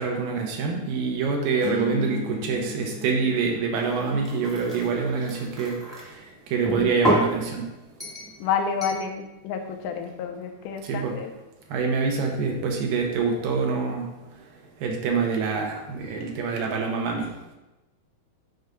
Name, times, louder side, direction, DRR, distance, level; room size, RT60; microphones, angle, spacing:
voice 1, 0.0-5.8 6.5-7.7 10.9-11.2 11.7-14.1 14.8-17.3, right 5 dB, 75° right, 1 dB, 2.4 m, -25 dB
sound 1, 1.6-5.9, left 6 dB, 50° left, 1.4 m, -38 dB
sound 2, 3.8-6.0 6.6-7.3 8.0-8.3 8.8-9.0, equal, ahead, 1.0 m, -29 dB
voice 2, 8.4-11.3, left 6 dB, 85° left, 5 dB, 2.6 m, -29 dB
6.7 x 4.7 x 5.2 m, 1.0 s
omnidirectional pair, 4.2 m